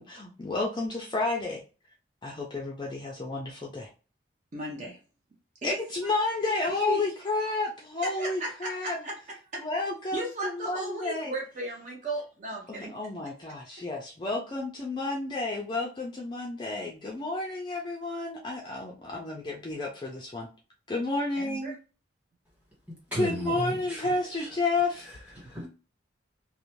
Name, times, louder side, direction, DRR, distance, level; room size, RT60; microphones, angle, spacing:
voice 1, 0.0-1.6 2.2-3.9 5.6-9.0 9.6-11.3 12.7-20.5 20.9-21.7 23.2-25.1, left 3 dB, 25° left, 0.4 m, -31 dB
voice 2, 4.5-5.0 5.6-7.0 8.0-9.6 10.1-12.9 21.4-21.7, right 2 dB, 40° right, 0.6 m, -36 dB
voice 3, 22.9-24.1 24.3-24.5 25.0-25.7, right 1 dB, 10° right, 1.3 m, -35 dB
2.5 x 2.0 x 3.0 m
head